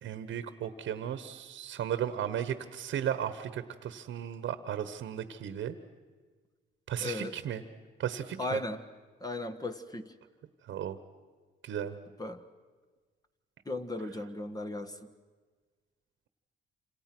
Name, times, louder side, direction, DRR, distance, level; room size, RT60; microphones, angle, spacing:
voice 1, 0.0-5.8 6.9-7.6 8.0-8.6 10.7-11.0 11.6-11.9, right 10 dB, 75° right, 11 dB, 1.3 m, -35 dB
voice 2, 7.0-7.3 8.4-8.8 9.2-10.1 12.2-12.4 13.7-15.0, left 2 dB, 20° left, 6 dB, 1.5 m, -36 dB
28.0 x 26.5 x 6.2 m, 1.4 s
cardioid pair, 90°, 20 cm